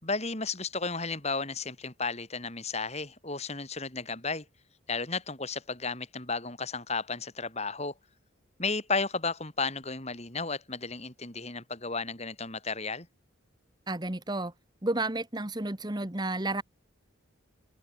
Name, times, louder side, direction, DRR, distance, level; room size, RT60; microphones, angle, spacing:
voice 1, 0.0-4.4 4.9-7.9 8.6-13.1, left 4 dB, 30° left, 4.5 m, -33 dB
voice 2, 13.9-14.5 14.8-16.6, right 2 dB, 20° right, 1.2 m, -31 dB
head